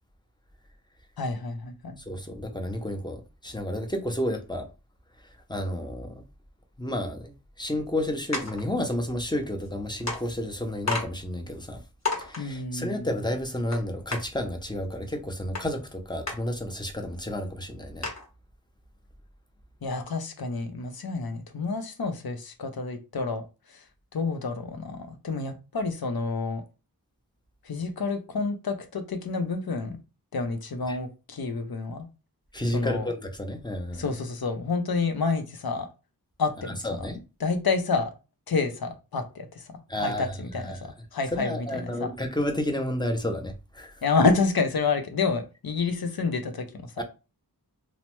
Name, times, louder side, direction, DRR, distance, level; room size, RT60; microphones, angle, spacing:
voice 1, 1.2-2.0 12.4-13.1 19.8-23.8 24.1-26.6 27.6-30.0 30.3-32.1 32.7-33.1 33.9-35.9 36.4-37.1 37.4-38.1 38.5-42.1 44.0-46.9, left 4 dB, 70° left, 0.6 m, -29 dB
voice 2, 2.0-4.7 5.5-6.2 6.8-11.8 12.2-18.1 30.9-31.0 32.5-34.0 36.8-37.2 39.9-40.3 40.6-40.8 41.3-44.0 47.0-47.1, left 1 dB, 10° left, 0.6 m, -31 dB
sound 1, 8.3-8.6 9.6-9.7 10.1-10.2 10.9-11.1 11.5-11.6 12.0-12.4 13.7-13.8 14.1-14.2 15.5-15.6 16.3-16.4 17.0-17.1 17.3-17.4 18.0-18.3, left 3 dB, 45° left, 1.0 m, -30 dB
3.1 x 2.0 x 3.0 m
wide cardioid pair, 45°, 39 cm